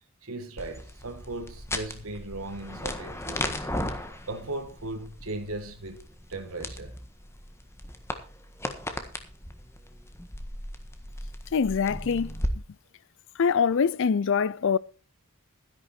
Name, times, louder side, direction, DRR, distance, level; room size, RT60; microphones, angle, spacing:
voice 1, 0.2-3.8 4.3-6.0 6.3-6.9, right 2 dB, 75° right, 1.8 m, -37 dB
sound 1, 0.6-12.5, left 1 dB, 10° left, 1.5 m, -37 dB
voice 2, 11.5-12.3 13.4-14.8, left 6 dB, 60° left, 0.5 m, -24 dB
12.5 x 10.5 x 4.4 m
head